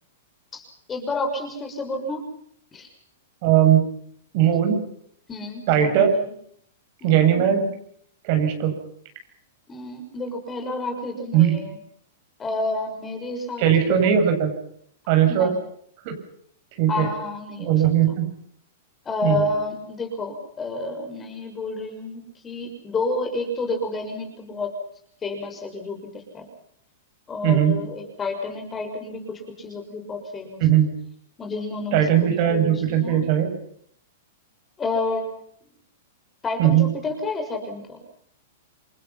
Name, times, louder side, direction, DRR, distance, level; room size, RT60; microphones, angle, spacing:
voice 1, 0.5-2.3 2.7-2.9 5.3-6.2 7.0-7.7 9.7-11.8 12.4-14.0 15.3-15.6 16.9-17.7 18.1-18.2 19.0-24.7 25.2-26.5 27.3-30.6 31.4-33.3 34.8-35.3 36.4-38.0, left 2 dB, 15° left, 4 dB, 6.4 m, -30 dB
voice 2, 3.4-3.8 4.3-4.8 5.7-6.1 7.0-7.7 8.2-8.7 11.3-11.6 13.6-14.5 15.1-15.5 16.0-16.1 16.8-17.1 17.6-18.3 19.2-19.5 27.4-27.8 30.6-30.9 31.9-33.5 36.6-36.9, right 10 dB, 50° right, 5 dB, 7.5 m, -19 dB
29.0 x 23.5 x 5.9 m, 0.66 s
hypercardioid pair, 135°, 0 cm